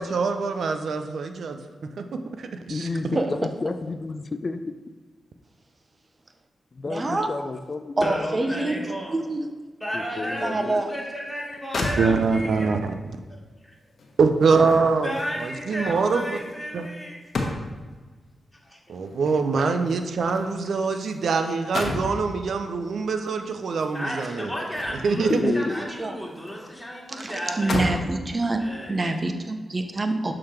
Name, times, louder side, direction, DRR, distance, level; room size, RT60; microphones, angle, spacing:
voice 1, 0.0-1.6 2.0-2.9 12.0-13.0 14.2-15.1 15.4-16.4 16.7-16.9 18.9-24.5 25.0-25.5, right 4 dB, 75° right, 7 dB, 0.5 m, -24 dB
voice 2, 2.7-4.6 6.7-8.2 8.8-8.9 9.9-10.7 25.3-25.9, left 3 dB, 50° left, 9 dB, 0.4 m, -30 dB
voice 3, 6.9-7.3 8.0-8.8 9.1-9.5 10.4-10.9 26.0-26.2 26.6-26.7 27.1-30.3, right 2 dB, 40° right, 6 dB, 0.7 m, -26 dB
voice 4, 8.0-9.2 9.8-12.7 15.0-17.2 18.6-18.8 23.9-28.0 28.6-29.1, equal, 5° left, -4 dB, 2.0 m, -33 dB
sound 1, 11.4-11.5 11.7-12.6 14.0-18.0 19.1-21.2 21.5-22.2 23.7-25.3 25.7-26.6 26.9-27.0 27.5-28.1 28.8-29.0, left 2 dB, 65° left, 1.0 m, -33 dB
6.4 x 3.8 x 4.4 m, 1.3 s
supercardioid pair, 45°, 0 cm